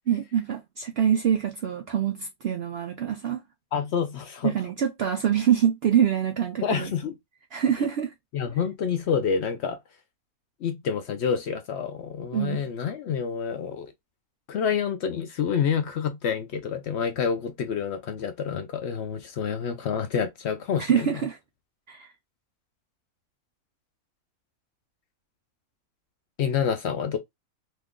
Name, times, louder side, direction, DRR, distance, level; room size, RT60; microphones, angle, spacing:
voice 1, 0.1-3.4 4.4-6.9 7.5-8.1 12.3-12.7 20.9-21.4 21.9-22.1, right 9 dB, 75° right, 0.5 m, -25 dB
voice 2, 3.7-4.5 6.6-7.1 8.3-9.8 10.6-13.9 14.5-21.1 26.4-27.2, left 7 dB, 65° left, 0.7 m, -28 dB
2.9 x 2.4 x 3.5 m
omnidirectional pair, 1.6 m